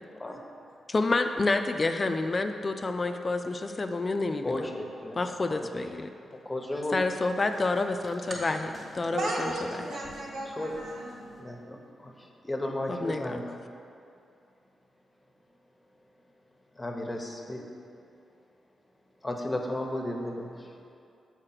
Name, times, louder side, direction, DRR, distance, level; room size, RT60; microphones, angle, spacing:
voice 1, 0.1-0.4 4.4-5.2 5.5-5.7 6.2-7.0 10.5-10.7 11.4-13.4 16.7-17.6 19.2-20.7, left 1 dB, 20° left, 2 dB, 0.9 m, -34 dB
voice 2, 0.9-4.7 5.1-6.1 6.9-9.5 12.9-13.4, left 3 dB, 35° left, 6 dB, 0.4 m, -28 dB
sound 1, 7.0-11.4, equal, 40° right, 1.5 m, -47 dB
voice 3, 9.1-11.2, right 1 dB, 65° right, -3 dB, 1.4 m, -34 dB
6.6 x 4.8 x 5.7 m, 2.5 s
cardioid pair, 70°, 0 cm